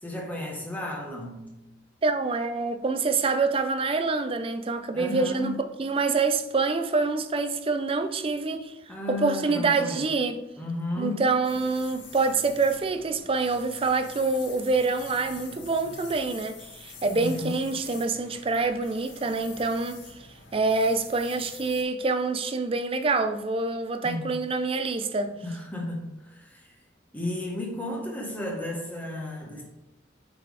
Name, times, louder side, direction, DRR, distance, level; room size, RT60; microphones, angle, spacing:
voice 1, 0.0-1.5 4.9-5.6 8.9-10.1 10.6-11.3 17.1-17.7 24.0-24.3 25.3-26.7 27.1-29.6, left 2 dB, 10° left, 1.2 m, -34 dB
voice 2, 2.0-8.8 9.1-10.4 11.0-20.0 20.5-25.3, right 3 dB, 30° right, 0.4 m, -26 dB
sound 1, 11.4-21.8, left 4 dB, 90° left, 1.2 m, -46 dB
8.7 x 4.2 x 3.3 m
head